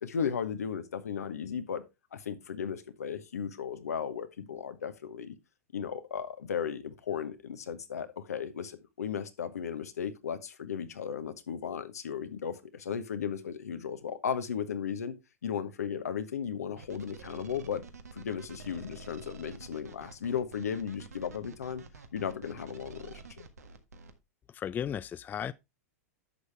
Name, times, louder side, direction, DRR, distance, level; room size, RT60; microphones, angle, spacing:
voice 1, 0.0-1.8 2.1-5.4 5.7-15.1 15.4-17.8 18.1-21.8 22.1-23.4, left 7 dB, 85° left, 1.2 m, -35 dB
sound 1, 16.8-24.1, right 3 dB, 85° right, 1.5 m, -49 dB
voice 2, 24.5-25.5, left 9 dB, 20° left, 0.4 m, -35 dB
10.5 x 6.6 x 3.4 m
hypercardioid pair, 105°, 8 cm